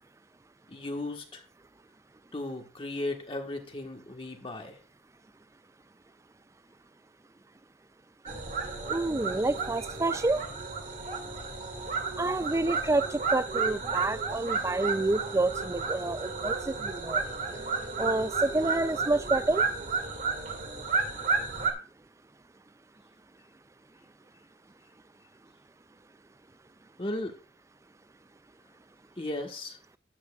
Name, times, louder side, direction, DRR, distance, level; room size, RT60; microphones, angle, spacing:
voice 1, 0.7-1.4 2.3-4.8 27.0-27.4 29.2-29.8, left 1 dB, 30° left, 1.4 m, -36 dB
sound 1, 8.3-21.7, right 4 dB, 40° right, 2.1 m, -32 dB
voice 2, 8.9-10.4 12.2-17.2 18.0-19.6, right 2 dB, 15° right, 0.4 m, -28 dB
13.0 x 9.4 x 2.4 m
head